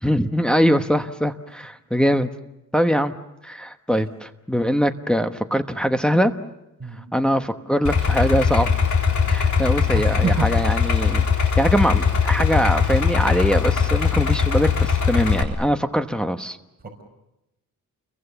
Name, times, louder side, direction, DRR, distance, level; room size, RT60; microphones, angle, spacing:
voice 1, 0.0-2.3 2.7-3.1 3.4-6.3 7.1-8.7 9.3-11.3 11.6-16.6, equal, 5° left, 6 dB, 1.1 m, -22 dB
Idling, 7.8-15.4, left 6 dB, 60° left, 3.8 m, -20 dB
voice 2, 9.9-10.5, right 5 dB, 30° right, 1 dB, 5.4 m, -28 dB
29.5 x 23.0 x 7.0 m, 0.92 s
cardioid pair, 105°, 34 cm